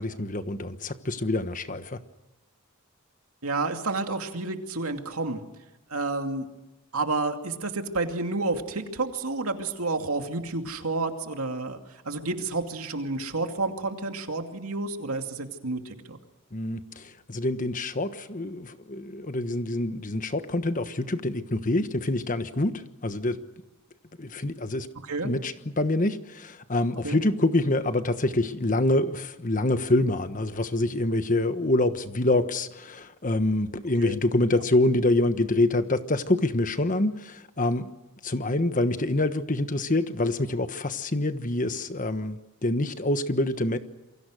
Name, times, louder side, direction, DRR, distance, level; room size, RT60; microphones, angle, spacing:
voice 1, 0.0-2.0 16.5-23.4 24.2-24.9 25.2-37.9 38.2-43.8, left 2 dB, 35° left, 10 dB, 1.3 m, -26 dB
voice 2, 3.4-5.4 5.9-6.5 6.9-16.2 25.0-25.3 27.0-27.2 34.0-34.2 34.5-34.6, right 3 dB, 80° right, 5 dB, 2.6 m, -30 dB
28.0 x 23.5 x 6.4 m, 1.1 s
head